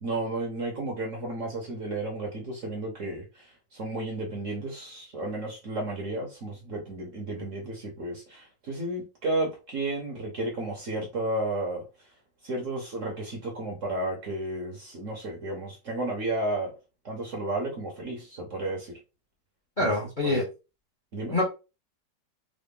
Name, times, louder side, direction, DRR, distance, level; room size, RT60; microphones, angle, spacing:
voice 1, 0.0-11.8 12.4-16.7 17.0-18.9 19.8-19.9 20.2-20.4 21.1-21.4, right 2 dB, 55° right, 1.0 m, -32 dB
voice 2, 19.8-20.4 21.3-21.5, left 2 dB, 35° left, 0.8 m, -25 dB
3.8 x 2.1 x 3.6 m
omnidirectional pair, 2.0 m